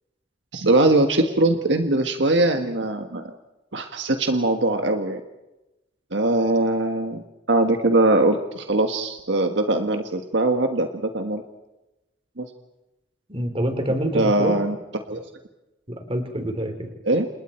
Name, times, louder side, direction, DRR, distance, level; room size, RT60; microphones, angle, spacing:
voice 1, 0.5-3.4 3.7-5.2 6.1-7.2 7.5-11.4 12.4-12.5 14.1-14.8 15.1-15.2 17.0-17.3, right 2 dB, 70° right, 6 dB, 1.5 m, -21 dB
voice 2, 13.3-14.5 15.9-16.9, right 1 dB, 30° right, 6 dB, 3.6 m, -26 dB
29.5 x 28.0 x 4.5 m, 0.96 s
head